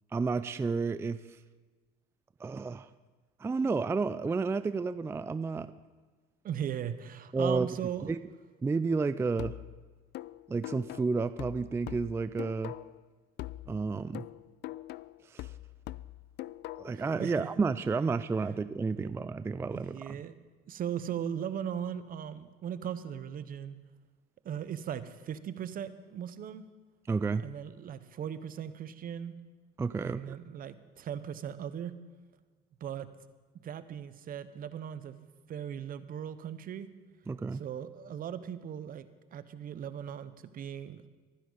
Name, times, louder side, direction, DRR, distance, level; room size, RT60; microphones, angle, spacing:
voice 1, 0.1-1.4 2.4-2.9 3.4-5.7 7.3-7.7 8.1-8.2 8.6-9.6 10.5-12.8 13.7-14.2 15.3-15.5 16.8-20.2 27.1-27.4 29.8-30.4 37.3-37.6, right 4 dB, 15° right, 13 dB, 0.3 m, -31 dB
voice 2, 6.4-8.1 16.9-17.5 19.0-19.1 19.7-20.3 20.7-23.8 24.4-26.6 27.4-29.3 30.0-31.9 32.8-33.1 33.6-36.9 37.5-41.1, right 9 dB, 45° right, 13 dB, 0.9 m, -38 dB
sound 1, 9.4-13.1 13.4-17.1, left 16 dB, 55° left, 0.4 m, -43 dB
23.5 x 10.0 x 4.0 m, 1.3 s
supercardioid pair, 100°, 20 cm